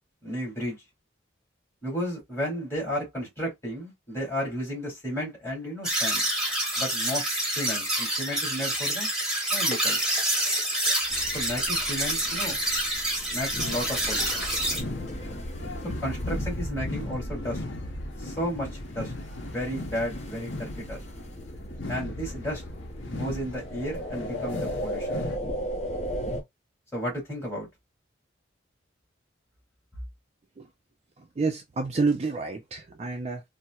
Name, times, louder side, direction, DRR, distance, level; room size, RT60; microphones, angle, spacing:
voice 1, 0.2-0.8 1.8-6.2 6.8-7.3 7.6-9.1 9.5-10.0 11.3-12.6 13.3-14.4 16.0-17.6 18.2-19.1 19.4-21.0 21.9-22.6 23.1-25.2 26.9-27.7, equal, 15° left, 2.1 m, -33 dB
sound 1, 5.8-14.8, right 1 dB, 5° right, 1.1 m, -27 dB
sound 2, 11.1-26.4, equal, 35° left, 0.8 m, -36 dB
sound 3, 13.6-25.4, left 2 dB, 75° left, 0.7 m, -39 dB
voice 2, 31.2-33.4, right 4 dB, 35° right, 0.4 m, -29 dB
4.2 x 2.0 x 2.3 m
head